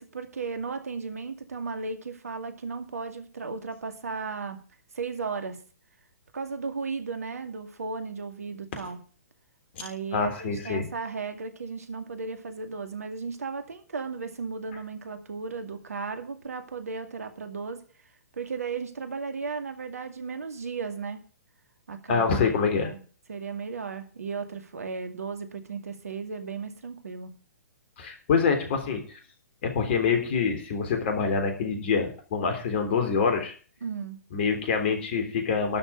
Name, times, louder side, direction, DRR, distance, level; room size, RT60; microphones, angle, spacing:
voice 1, 0.0-4.6 4.9-5.6 6.3-9.0 9.8-17.8 18.3-21.2 21.9-22.2 22.8-23.0 23.3-27.3 33.8-34.2, right 4 dB, 70° right, 8 dB, 2.2 m, -35 dB
voice 2, 10.1-10.9 22.1-22.9 28.0-29.2 29.6-33.5 34.3-35.8, left 5 dB, 45° left, 5 dB, 3.6 m, -26 dB
12.5 x 6.3 x 9.2 m, 0.39 s
figure-of-eight pair, 120°, 9 cm